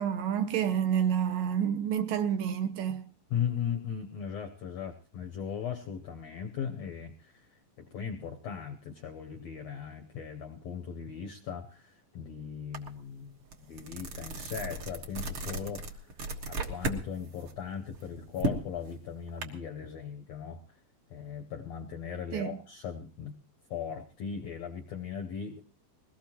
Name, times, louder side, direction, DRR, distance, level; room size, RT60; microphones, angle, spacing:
voice 1, 0.0-3.0 22.3-22.5, right 9 dB, 75° right, 2.5 m, -29 dB
voice 2, 3.3-16.2 16.5-20.8 21.1-23.4 23.7-25.6, left 7 dB, 75° left, 1.6 m, -38 dB
sound 1, 12.7-12.9 13.3-17.0 17.4-19.4, right 2 dB, 50° right, 1.8 m, -35 dB
21.5 x 18.0 x 3.0 m
omnidirectional pair, 4.2 m